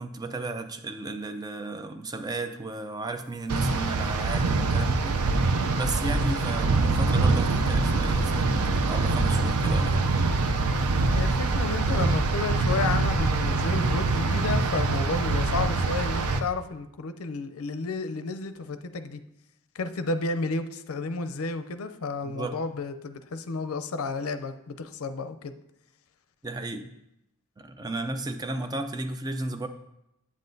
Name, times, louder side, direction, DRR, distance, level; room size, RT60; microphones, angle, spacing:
voice 1, 0.0-5.2 5.7-10.1 22.2-22.6 26.4-26.9 27.6-29.7, right 2 dB, 20° right, 7 dB, 0.4 m, -34 dB
sound 1, 3.5-16.4, right 3 dB, 90° right, 0.5 m, -24 dB
voice 2, 11.1-19.2 19.7-25.5, left 3 dB, 75° left, 10 dB, 0.5 m, -32 dB
8.3 x 7.5 x 2.6 m, 0.85 s
head